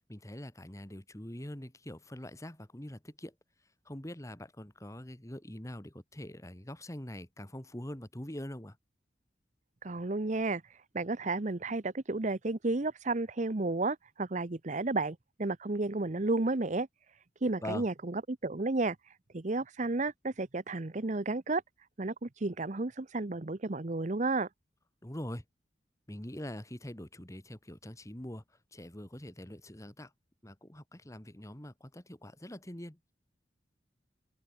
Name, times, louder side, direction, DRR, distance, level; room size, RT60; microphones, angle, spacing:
voice 1, 0.0-3.3 3.9-8.8 17.6-17.9 25.0-25.4 26.1-28.4 28.7-30.1 30.4-33.0, left 1 dB, 20° left, 2.2 m, -43 dB
voice 2, 9.8-10.6 10.9-16.9 17.4-19.0 19.3-21.6 22.0-24.5, right 2 dB, 45° right, 0.9 m, -32 dB
open air
head